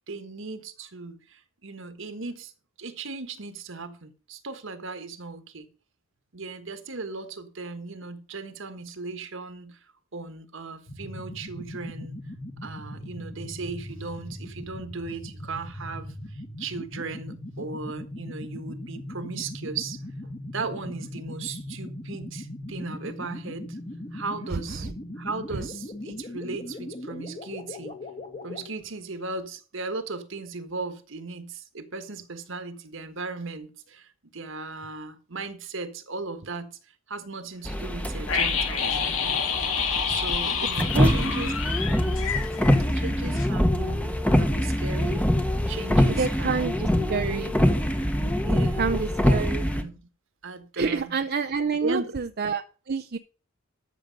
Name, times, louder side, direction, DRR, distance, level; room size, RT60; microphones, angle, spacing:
voice 1, 0.1-2.5 2.8-5.7 6.3-9.8 10.1-12.2 12.6-20.0 20.5-23.8 24.1-24.9 25.2-27.9 28.4-39.0 40.1-41.5 42.9-45.3 45.7-47.3 48.4-50.0 50.4-51.2 51.8-52.2, right 3 dB, 65° right, 1.5 m, -37 dB
sound 1, 10.9-28.7, left 1 dB, 35° left, 1.8 m, -39 dB
sound 2, 37.6-49.8, equal, 5° left, 1.1 m, -25 dB
sound 3, 38.3-43.1 43.3-43.5, left 6 dB, 70° left, 2.5 m, -28 dB
voice 2, 46.2-47.5 48.6-49.6 50.8-53.2, right 5 dB, 50° right, 0.6 m, -28 dB
13.0 x 6.8 x 5.3 m
head